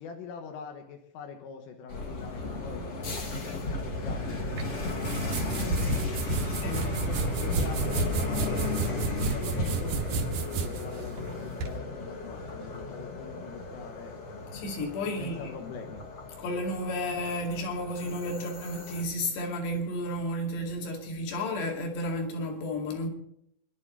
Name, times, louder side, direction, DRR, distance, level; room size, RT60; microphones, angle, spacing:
voice 1, 0.0-6.1 6.6-14.2 15.1-16.0, left 6 dB, 85° left, 4.0 m, -44 dB
sound 1, 1.9-19.0, left 2 dB, 45° left, 1.9 m, -34 dB
sound 2, 4.6-11.7, right 4 dB, 85° right, 1.6 m, -33 dB
voice 2, 14.5-15.5 16.4-23.1, left 1 dB, 60° left, 4.4 m, -32 dB
26.0 x 11.5 x 4.2 m
omnidirectional pair, 5.6 m